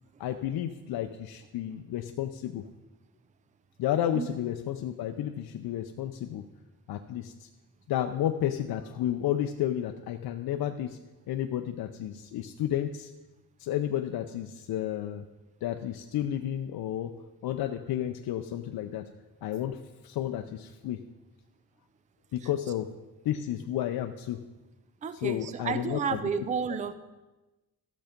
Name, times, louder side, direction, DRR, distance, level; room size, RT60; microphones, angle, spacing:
voice 1, 0.2-2.6 3.8-6.5 6.9-7.5 7.9-11.0 11.3-13.1 13.6-15.2 15.6-17.2 17.4-19.1 19.4-21.0 22.3-22.9 23.2-24.4 25.1-26.2, left 11 dB, 75° left, 5 dB, 0.6 m, -32 dB
voice 2, 25.0-26.9, right 6 dB, 20° right, 12 dB, 0.4 m, -31 dB
13.5 x 7.0 x 5.1 m, 1.1 s
wide cardioid pair, 165°, 37 cm